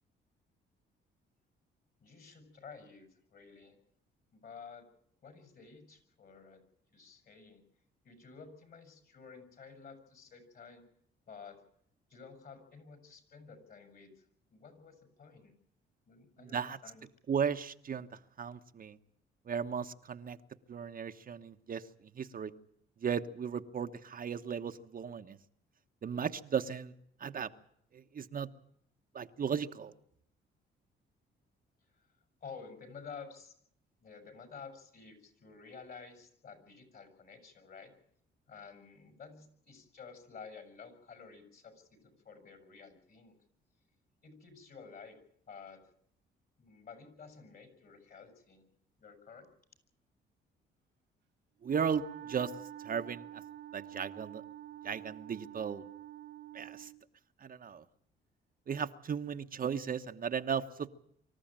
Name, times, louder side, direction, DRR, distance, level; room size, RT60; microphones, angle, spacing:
voice 1, 2.0-3.8 4.3-4.9 5.2-6.6 6.9-7.6 8.0-10.8 11.3-11.6 12.1-14.2 14.5-15.5 16.1-17.0 31.9-32.1 32.4-33.5 34.0-37.9 38.5-43.3 44.2-45.2 45.5-45.9 46.6-48.7 49.0-49.5, left 5 dB, 50° left, 9 dB, 6.7 m, -52 dB
voice 2, 16.4-16.8 17.3-18.1 18.4-19.0 19.5-20.4 20.7-22.5 23.0-25.4 26.0-26.9 27.2-27.5 27.9-28.5 29.1-29.9 51.6-52.5 52.8-53.4 53.7-54.4 54.8-55.8 56.5-56.9 57.4-57.8 58.7-60.9, right 7 dB, 45° right, 7 dB, 1.2 m, -36 dB
Wind instrument woodwind instrument, 51.6-57.0, right 11 dB, 60° right, 0.8 m, -48 dB
25.0 x 14.0 x 8.9 m, 0.68 s
cardioid pair, 90°, 20 cm